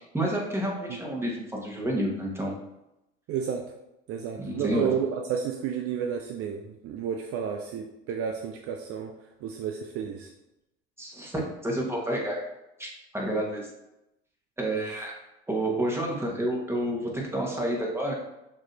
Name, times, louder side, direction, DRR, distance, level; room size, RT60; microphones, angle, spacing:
voice 1, 0.1-2.5 4.4-4.9 11.0-12.4 12.8-13.7 14.6-15.1 15.5-17.0 17.3-18.2, right 1 dB, 10° right, -2 dB, 1.4 m, -29 dB
voice 2, 3.3-3.6 4.1-9.1 9.4-10.3, right 7 dB, 50° right, 3 dB, 0.5 m, -31 dB
6.2 x 3.0 x 2.7 m, 0.89 s
hypercardioid pair, 80°, 29 cm